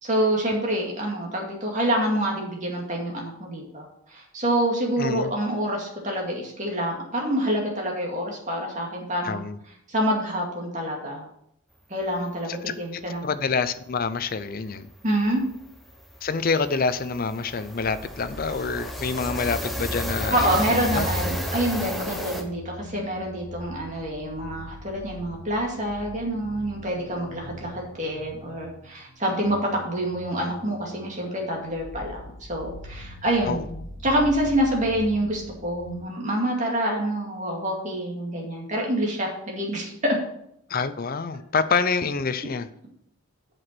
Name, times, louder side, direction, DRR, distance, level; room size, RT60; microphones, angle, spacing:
voice 1, 0.0-9.4 9.9-11.3 11.9-13.3 15.0-15.4 20.3-32.2 32.5-33.6 34.0-40.2, right 1 dB, 35° right, -1 dB, 2.2 m, -27 dB
voice 2, 5.0-5.3 9.2-9.6 12.5-14.9 16.2-21.1 33.5-33.8 40.7-42.7, left 4 dB, 40° left, 12 dB, 0.5 m, -27 dB
sound 1, 14.0-14.1 14.4-14.6 14.9-22.4, equal, ahead, 0.9 m, -33 dB
sound 2, 17.7-36.0, equal, 65° left, 2.8 m, -42 dB
8.0 x 6.0 x 6.0 m, 0.75 s
head